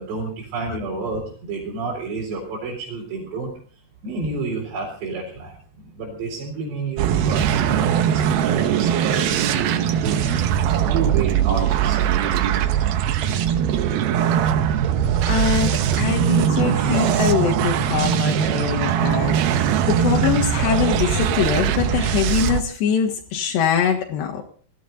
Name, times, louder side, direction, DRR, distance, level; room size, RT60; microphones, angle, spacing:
voice 1, 0.0-3.5 4.0-10.3 10.8-12.3, right 4 dB, 85° right, -4 dB, 6.3 m, -30 dB
sound 1, 7.0-22.6, right 9 dB, 70° right, 2.7 m, -20 dB
voice 2, 15.3-24.4, left 7 dB, 85° left, 2 dB, 3.8 m, -23 dB
20.0 x 14.5 x 4.0 m, 0.43 s
omnidirectional pair, 4.8 m